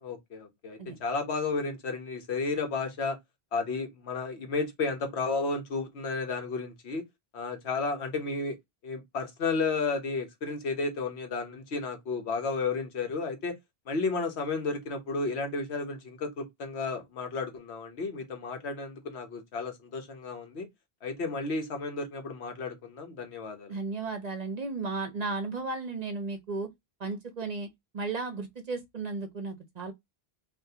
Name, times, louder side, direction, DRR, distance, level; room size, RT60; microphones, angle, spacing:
voice 1, 0.0-3.2 3.5-7.0 7.3-8.6 8.8-13.5 13.9-20.7 21.0-23.7, left 4 dB, 85° left, 1.2 m, -32 dB
voice 2, 23.7-26.7 27.0-27.7 27.9-29.9, right 3 dB, 45° right, 0.6 m, -34 dB
3.5 x 2.6 x 2.7 m
omnidirectional pair, 1.1 m